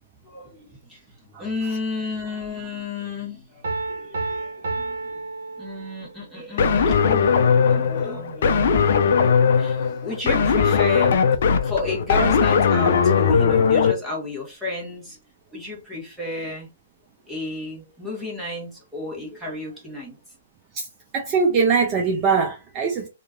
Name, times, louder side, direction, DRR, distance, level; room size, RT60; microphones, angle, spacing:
voice 1, 0.2-5.3 5.6-15.2 15.5-16.7 17.3-20.2, left 3 dB, ahead, 1.1 m, -32 dB
Piano, 3.6-6.2, right 3 dB, 75° right, 0.7 m, -31 dB
sound 1, 6.6-13.9, left 6 dB, 60° left, 0.4 m, -19 dB
voice 2, 21.1-23.1, right 5 dB, 25° right, 0.5 m, -21 dB
2.8 x 2.4 x 2.3 m
hypercardioid pair, 155°, 0 cm